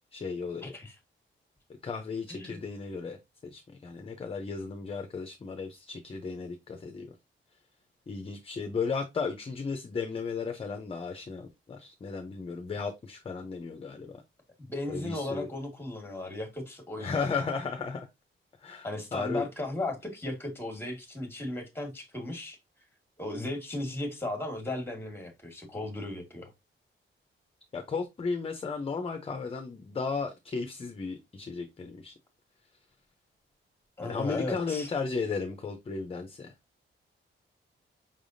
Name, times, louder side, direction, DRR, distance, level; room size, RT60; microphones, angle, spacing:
voice 1, 0.1-0.8 1.8-3.2 3.4-7.1 8.1-14.2 14.9-15.5 17.0-18.1 18.6-19.5 27.7-32.1 34.0-36.5, left 4 dB, 25° left, 0.6 m, -35 dB
voice 2, 0.6-0.9 2.3-2.6 14.6-17.3 18.8-22.6 23.2-26.5 34.0-34.9, left 2 dB, 10° left, 1.4 m, -36 dB
5.4 x 3.4 x 2.6 m
wide cardioid pair, 155°, 21 cm